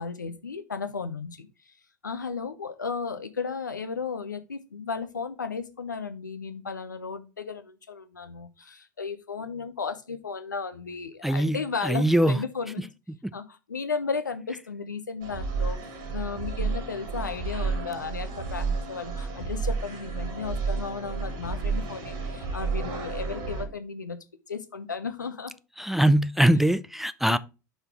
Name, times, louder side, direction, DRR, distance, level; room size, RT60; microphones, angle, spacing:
voice 1, 0.0-1.5 2.0-12.9 13.3-15.8 16.1-24.2 24.5-25.5 26.4-26.5 27.3-27.4, left 5 dB, 85° left, 0.7 m, -34 dB
voice 2, 11.2-11.6 11.8-12.4 25.8-27.4, right 1 dB, 5° right, 0.3 m, -22 dB
sound 1, 15.2-23.7, right 4 dB, 50° right, 1.9 m, -31 dB
5.5 x 4.0 x 4.4 m
figure-of-eight pair, 80°, 10 cm